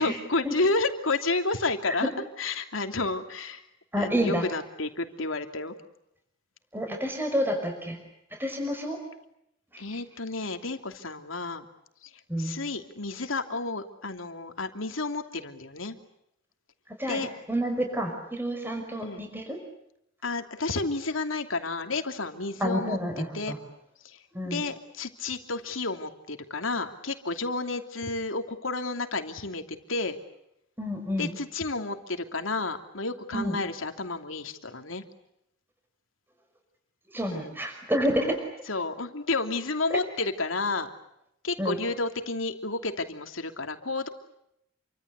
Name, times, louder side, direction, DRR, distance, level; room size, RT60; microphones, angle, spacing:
voice 1, 0.0-2.1 2.4-3.6 4.0-5.7 9.8-11.6 12.0-12.1 12.4-16.0 17.1-17.3 19.0-19.3 20.2-23.0 23.3-23.5 24.0-30.2 31.2-35.0 37.3-37.6 38.7-40.9 41.4-44.1, left 3 dB, 85° left, 6 dB, 3.0 m, -31 dB
voice 2, 3.9-4.5 6.7-8.0 8.3-9.0 9.7-9.8 12.3-12.5 17.0-19.6 22.6-23.6 24.3-24.6 30.8-31.3 33.3-33.6 37.1-38.4 39.9-40.0 41.6-41.8, equal, 10° right, 4 dB, 5.4 m, -29 dB
28.5 x 25.0 x 8.3 m, 0.79 s
head